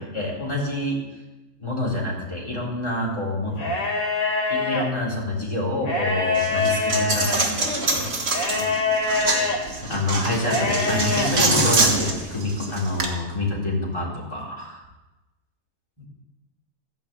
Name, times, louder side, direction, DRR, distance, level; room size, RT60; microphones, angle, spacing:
voice 1, 0.1-1.0 1.6-3.7 4.5-8.1 9.6-14.8 16.0-16.1, left 1 dB, 15° left, -4 dB, 3.7 m, -27 dB
sound 1, 3.5-4.8 5.8-7.5 8.3-9.6 10.4-11.3, left 3 dB, 75° left, 3.2 m, -24 dB
Coin (dropping), 6.4-13.1, right 2 dB, 40° right, 1.9 m, -25 dB
15.0 x 5.5 x 8.7 m, 1.1 s
omnidirectional pair, 1.8 m